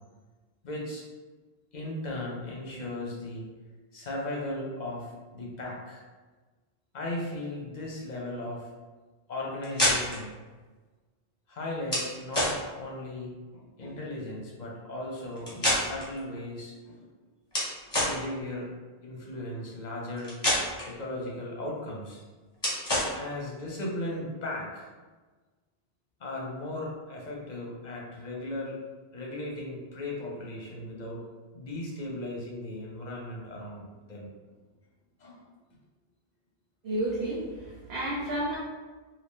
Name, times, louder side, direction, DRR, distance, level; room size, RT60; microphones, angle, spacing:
voice 1, 0.6-1.0 1.7-3.5 3.9-6.0 6.9-8.7 9.3-10.3 11.5-17.1 18.0-18.7 19.0-20.4 20.9-22.2 23.1-24.9 26.2-28.8 29.1-31.2 31.5-34.3 35.2-35.4, left 1 dB, 50° left, -3 dB, 0.8 m, -37 dB
sound 1, 9.6-10.2 11.9-12.1 12.3-12.6 15.4-16.2 17.5-18.2 20.2-20.9 22.6-23.1, left 1 dB, 25° left, 1.0 m, -27 dB
voice 2, 36.8-38.6, right 1 dB, 75° right, -6 dB, 0.9 m, -31 dB
2.7 x 2.7 x 3.5 m, 1.3 s
omnidirectional pair, 1.0 m